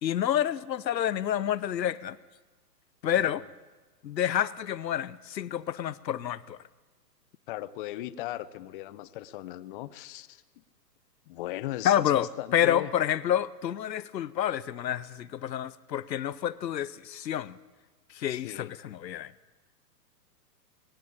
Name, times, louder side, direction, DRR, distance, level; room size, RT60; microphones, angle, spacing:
voice 1, 0.0-2.2 3.0-3.4 4.0-6.6 11.8-12.3 12.5-17.6 18.1-19.3, left 10 dB, 85° left, 0.9 m, -28 dB
voice 2, 7.5-10.4 11.3-12.9 18.3-18.7, left 15 dB, 30° left, 0.7 m, -38 dB
20.0 x 17.0 x 8.6 m
hypercardioid pair, 135°, 49 cm